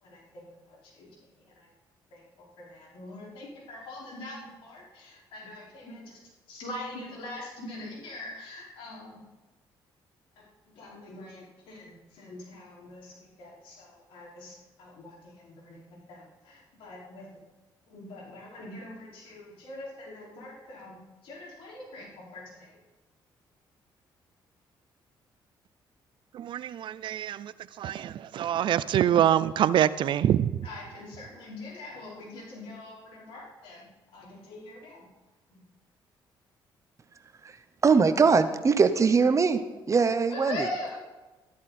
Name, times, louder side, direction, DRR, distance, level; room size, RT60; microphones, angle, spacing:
voice 1, 0.0-1.1 1.6-1.7 2.1-2.2 2.6-6.2 6.5-9.2 10.4-10.5 10.7-15.8 16.1-17.3 17.9-22.7 30.6-33.8 34.1-35.0 35.5-35.6 40.3-41.0, left 2 dB, 85° left, 5.0 m, -42 dB
voice 2, 26.3-30.5, right 10 dB, 65° right, 0.5 m, -25 dB
voice 3, 37.8-40.7, right 5 dB, 35° right, 0.9 m, -22 dB
13.5 x 12.5 x 4.3 m
cardioid pair, 95°, 9 cm